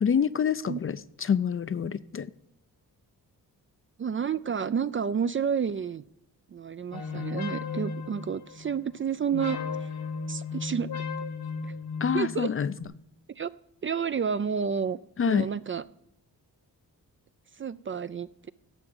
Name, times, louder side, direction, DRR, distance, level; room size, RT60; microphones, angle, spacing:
voice 1, 0.0-2.3 12.0-12.7 15.2-15.5, left 7 dB, 35° left, 0.4 m, -26 dB
voice 2, 4.0-6.0 6.5-9.9 10.3-11.0 11.6-11.7 12.1-12.5 13.3-13.5 13.8-15.0 15.3-15.8 17.6-18.5, right 7 dB, 35° right, 0.4 m, -30 dB
sound 1, 6.9-8.9 9.3-12.8, left 4 dB, 70° left, 1.8 m, -35 dB
11.5 x 7.1 x 7.0 m
cardioid pair, 70°, 39 cm